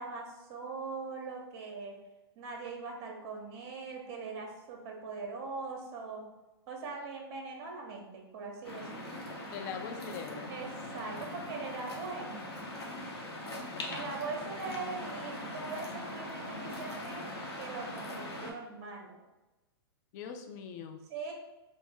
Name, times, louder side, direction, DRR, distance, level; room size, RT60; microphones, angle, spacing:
voice 1, 0.0-2.0 2.4-6.3 6.7-9.2 10.5-12.5 13.9-17.3 17.6-19.1 21.1-21.3, right 4 dB, 45° right, 1 dB, 0.9 m, -41 dB
Waves surf, 8.6-18.5, left 1 dB, 85° left, 0.8 m, -41 dB
voice 2, 9.5-10.5 13.7-14.1 20.1-21.0, left 7 dB, 45° left, 6 dB, 0.4 m, -42 dB
3.8 x 2.0 x 3.5 m, 1.1 s
hypercardioid pair, 125°, 13 cm